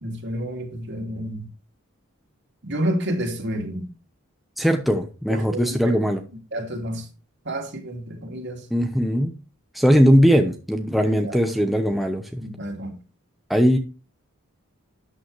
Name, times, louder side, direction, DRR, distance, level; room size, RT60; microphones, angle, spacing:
voice 1, 0.0-1.5 2.6-3.9 5.3-5.9 6.5-7.1 7.4-8.7 10.1-10.2 11.2-11.4 12.4-12.9, right 1 dB, 55° right, 2.6 m, -30 dB
voice 2, 4.6-6.2 8.7-9.3 9.7-12.4 13.5-13.8, equal, ahead, 0.9 m, -19 dB
12.5 x 9.0 x 3.2 m
head